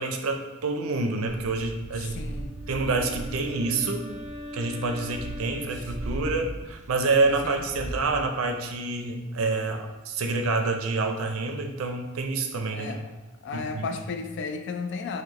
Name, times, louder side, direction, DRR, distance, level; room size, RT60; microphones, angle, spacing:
voice 1, 0.0-2.2 2.7-4.1 4.5-13.0 13.5-13.9, right 3 dB, 90° right, 4 dB, 0.5 m, -27 dB
Purr, 1.3-8.2, right 1 dB, 35° right, 0.4 m, -39 dB
voice 2, 2.0-2.5 7.4-7.6 12.7-13.1 13.4-15.2, left 4 dB, 60° left, 7 dB, 0.3 m, -34 dB
Wind instrument woodwind instrument, 2.1-6.7, equal, 15° right, 1.5 m, -42 dB
4.7 x 2.1 x 2.9 m, 1.2 s
head